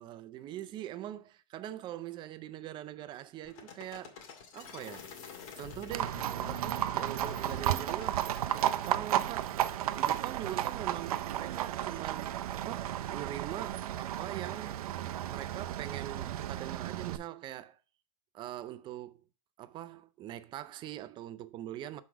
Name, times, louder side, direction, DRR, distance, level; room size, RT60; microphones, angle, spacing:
voice 1, 0.0-4.2 4.5-5.1 5.6-8.3 8.5-9.6 9.9-14.7 15.3-17.8 18.3-19.2 19.6-22.0, right 12 dB, 25° right, 0.4 m, -42 dB
sound 1, 3.5-8.9, left 6 dB, 80° left, 2.3 m, -48 dB
Livestock farm animals working animals, 5.9-17.2, right 12 dB, 90° right, 0.5 m, -33 dB
6.0 x 4.8 x 4.8 m
supercardioid pair, 145°, 18 cm